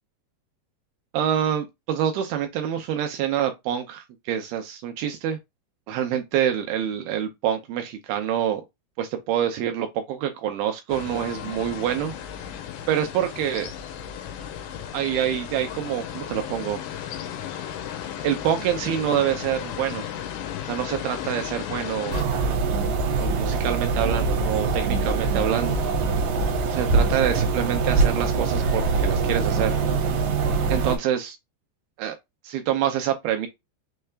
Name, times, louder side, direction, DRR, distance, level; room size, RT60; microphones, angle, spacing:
voice 1, 1.1-5.4 5.9-8.6 9.0-12.1 12.9-13.7 14.9-16.8 18.2-20.0 20.6-22.1 23.2-25.8 26.7-29.8 30.7-31.4 32.0-32.2 32.4-33.5, right 10 dB, 85° right, 2.2 m, -26 dB
sound 1, 10.9-22.2, left 9 dB, 90° left, 3.0 m, -35 dB
sound 2, 22.1-31.0, right 4 dB, 70° right, 2.3 m, -23 dB
6.5 x 3.3 x 2.3 m
omnidirectional pair, 4.9 m